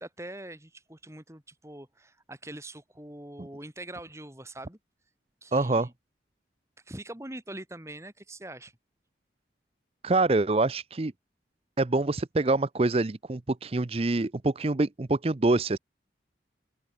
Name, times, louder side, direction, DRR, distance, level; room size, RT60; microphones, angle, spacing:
voice 1, 0.0-4.8 5.4-5.9 6.9-8.7, right 1 dB, 15° right, 2.7 m, -43 dB
voice 2, 5.5-5.9 10.0-11.1 11.8-15.8, right 2 dB, 35° right, 0.6 m, -25 dB
open air
head